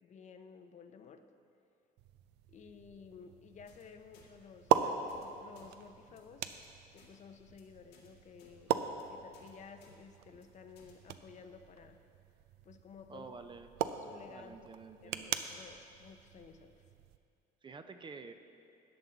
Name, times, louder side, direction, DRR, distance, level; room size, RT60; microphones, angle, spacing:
voice 1, 0.0-1.3 2.5-6.5 6.9-8.8 9.1-12.1 12.6-13.3 14.0-14.7 15.0-16.8, left 6 dB, 45° left, 8 dB, 0.6 m, -54 dB
sound 1, 2.0-17.2, right 10 dB, 85° right, 0.5 m, -40 dB
sound 2, 3.7-3.8 4.1-4.3 4.6-4.8 5.1-5.3 5.5-5.7 6.0-6.2 6.5-6.7 6.9-7.1 7.4-7.6 7.9-8.1 8.4-8.5 8.8-9.0 9.3-9.5 9.8-9.9 10.3-10.4 10.8-10.9, left 6 dB, 85° left, 2.0 m, -63 dB
voice 2, 13.1-13.7 14.3-15.3 17.6-18.3, right 4 dB, 30° right, 7 dB, 0.6 m, -49 dB
13.5 x 9.0 x 4.0 m, 2.6 s
cardioid pair, 110°, 17 cm